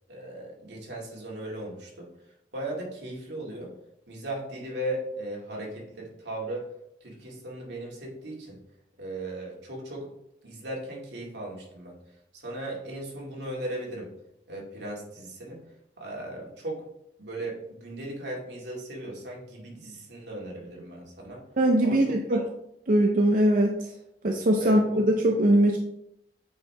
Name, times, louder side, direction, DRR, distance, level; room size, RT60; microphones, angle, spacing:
voice 1, 0.1-2.1 2.5-3.7 4.1-6.7 7.0-8.6 9.0-10.1 10.4-12.0 12.3-14.1 14.5-15.6 16.0-16.8 17.2-21.4 21.8-22.5 24.6-25.0, right 1 dB, 80° right, -2 dB, 2.1 m, -37 dB
voice 2, 21.6-22.4 22.9-23.9 24.2-24.9 25.2-25.8, right 1 dB, 50° right, 2 dB, 0.6 m, -21 dB
8.5 x 4.5 x 3.4 m, 0.79 s
head